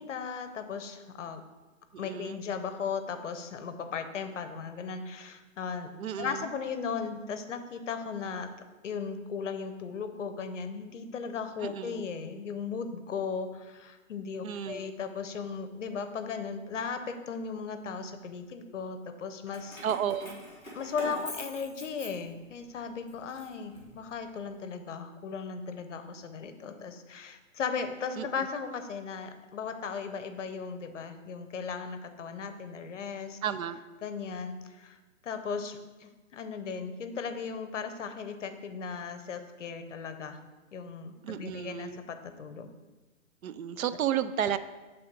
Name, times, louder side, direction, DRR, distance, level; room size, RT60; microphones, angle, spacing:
voice 1, 0.0-1.4 2.0-5.9 6.2-8.5 8.8-19.8 20.7-33.4 34.0-35.0 35.2-40.4 40.7-42.7, left 5 dB, 65° left, 8 dB, 0.7 m, -37 dB
voice 2, 1.9-2.4 6.0-6.5 11.6-12.0 14.4-14.9 19.8-20.4 28.2-28.3 33.4-33.8 41.2-42.0 43.4-44.6, right 9 dB, 85° right, 13 dB, 0.5 m, -32 dB
Keys jangling, 19.5-22.6 23.1-24.4, left 1 dB, 5° right, 1.0 m, -44 dB
5.9 x 3.5 x 5.2 m, 1.2 s
hypercardioid pair, 170°, 41 cm